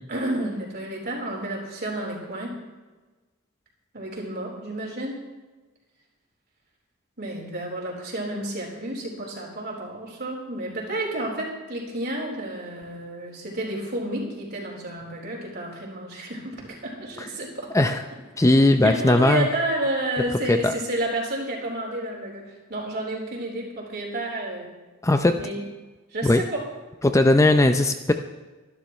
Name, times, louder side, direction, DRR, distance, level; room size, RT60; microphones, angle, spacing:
voice 1, 0.1-2.5 3.9-5.2 7.2-17.8 18.4-18.5 18.8-24.7 25.4-25.7 26.1-26.6, right 1 dB, 50° right, -1 dB, 4.1 m, -31 dB
voice 2, 18.4-19.5 20.5-20.7 25.0-25.4 26.2-26.4 27.0-28.1, left 2 dB, 15° left, 7 dB, 0.5 m, -18 dB
24.5 x 12.0 x 3.2 m, 1.3 s
head